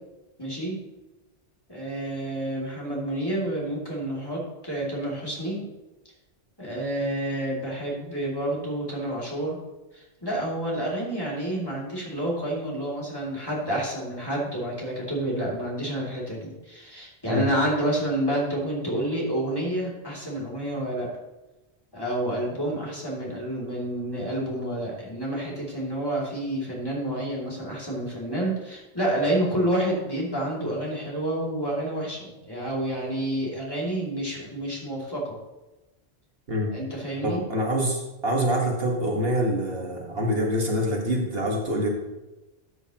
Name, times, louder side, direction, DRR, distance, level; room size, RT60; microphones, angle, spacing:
voice 1, 0.4-0.8 1.7-5.7 6.6-9.6 9.9-21.1 21.9-35.4 36.7-37.4, right 1 dB, 20° left, -5 dB, 2.7 m, -29 dB
voice 2, 37.2-41.9, equal, 60° right, -1 dB, 1.9 m, -25 dB
13.5 x 8.0 x 3.0 m, 1.1 s
omnidirectional pair, 1.1 m